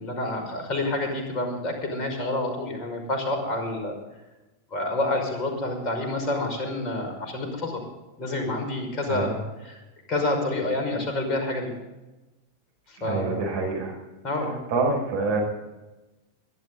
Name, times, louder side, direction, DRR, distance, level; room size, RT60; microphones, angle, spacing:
voice 1, 0.0-3.9 4.7-7.8 8.2-9.3 9.6-9.8 10.1-11.7 12.9-13.4 14.2-14.6, left 2 dB, 30° left, 3 dB, 5.4 m, -28 dB
voice 2, 9.1-9.4 13.0-14.0 14.7-15.4, right 3 dB, 55° right, 0 dB, 5.3 m, -26 dB
22.0 x 12.0 x 3.9 m, 1.0 s
figure-of-eight pair, 90°, 0 cm